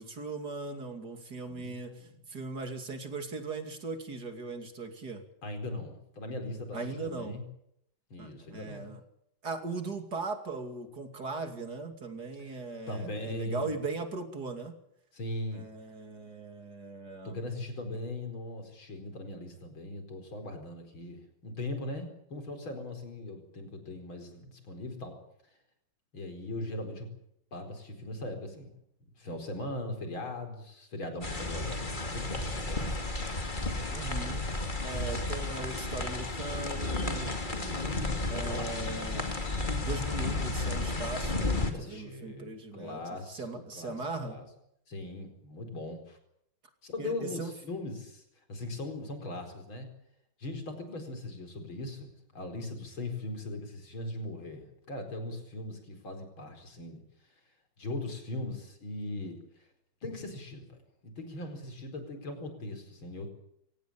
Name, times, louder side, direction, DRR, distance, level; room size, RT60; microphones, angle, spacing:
voice 1, 0.0-5.2 6.7-7.4 8.2-9.0 9.4-14.8 15.5-17.4 33.9-34.4 34.8-37.4 38.3-39.3 39.8-44.4 47.0-47.5, right 3 dB, 50° right, 6 dB, 3.2 m, -39 dB
voice 2, 1.5-2.2 5.4-7.4 8.1-9.0 12.9-13.8 15.1-15.7 17.2-25.2 26.1-27.1 27.5-28.7 29.2-33.4 37.4-38.8 41.7-44.5 44.9-46.2 46.8-48.2 48.5-49.9 50.4-57.0 57.8-59.4 60.0-63.3, left 1 dB, 75° left, 6 dB, 5.4 m, -40 dB
sound 1, 31.2-41.7, left 2 dB, 25° left, 2.6 m, -33 dB
25.0 x 17.5 x 8.8 m, 0.75 s
omnidirectional pair, 2.2 m